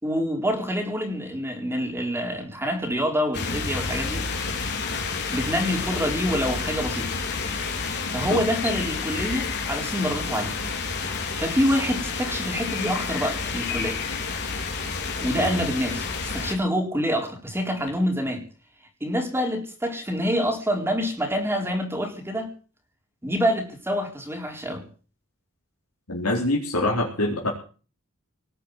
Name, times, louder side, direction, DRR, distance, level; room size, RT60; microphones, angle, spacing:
voice 1, 0.0-4.2 5.3-7.1 8.1-10.6 11.4-14.0 15.2-18.4 19.0-22.5 23.2-24.8, equal, 10° right, 3 dB, 4.0 m, -26 dB
sound 1, 3.3-16.5, left 4 dB, 50° left, 4.0 m, -30 dB
voice 2, 26.1-27.5, left 1 dB, 75° left, -2 dB, 4.2 m, -25 dB
19.5 x 7.3 x 9.3 m, 0.39 s
head